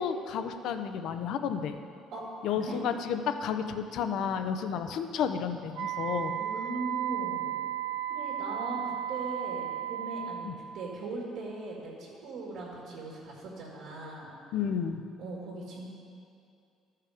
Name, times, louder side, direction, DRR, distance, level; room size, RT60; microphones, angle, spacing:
voice 1, 0.0-1.8 2.4-6.4 10.4-10.5 14.5-15.0, left 7 dB, 60° left, 8 dB, 0.6 m, -31 dB
voice 2, 2.1-2.8 6.0-7.5 8.1-14.3 15.2-15.9, right 2 dB, 70° right, -5 dB, 2.0 m, -39 dB
Wind instrument woodwind instrument, 5.7-10.5, right 11 dB, 85° right, 0.7 m, -34 dB
13.0 x 5.7 x 4.9 m, 2.5 s
cardioid pair, 150°, 0 cm